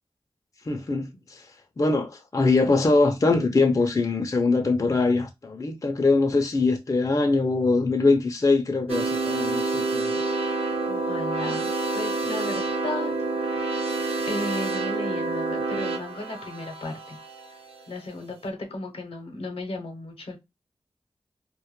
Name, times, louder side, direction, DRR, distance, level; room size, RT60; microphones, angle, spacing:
voice 1, 0.7-1.4 1.8-10.2, left 3 dB, 35° left, 0.4 m, -22 dB
sound 1, 8.9-17.9, right 3 dB, 80° right, 0.5 m, -28 dB
voice 2, 10.9-13.7 14.3-17.2 17.9-20.4, left 2 dB, 80° left, 0.7 m, -35 dB
2.2 x 2.1 x 2.9 m
wide cardioid pair, 55°, 10 cm